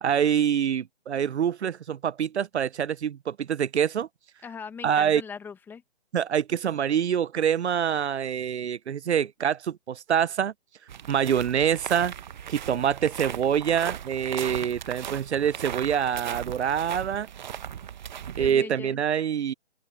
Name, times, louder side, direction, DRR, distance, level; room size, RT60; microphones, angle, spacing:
voice 1, 0.0-4.1 4.8-5.2 6.1-10.5 11.1-12.1 12.5-17.3 18.4-19.5, right 8 dB, 80° right, 0.6 m, -25 dB
voice 2, 4.4-5.8 18.4-19.0, left 6 dB, 5° left, 1.4 m, -40 dB
sound 1, 10.9-18.5, right 9 dB, 45° right, 1.0 m, -37 dB
hypercardioid pair, 155°, 33 cm